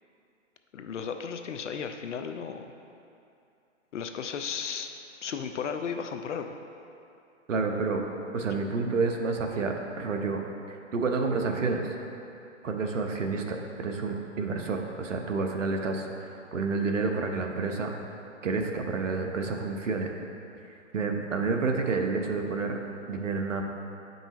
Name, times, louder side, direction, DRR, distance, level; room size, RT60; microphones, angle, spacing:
voice 1, 0.7-2.7 3.9-4.9 5.2-6.6, left 6 dB, 70° left, 6 dB, 0.5 m, -34 dB
voice 2, 7.5-8.0 8.3-10.4 10.7-11.9 12.6-17.9 18.4-20.1 20.9-22.8 23.1-23.6, right 4 dB, 75° right, 3 dB, 0.9 m, -29 dB
8.7 x 5.3 x 3.0 m, 2.7 s
hypercardioid pair, 140°, 37 cm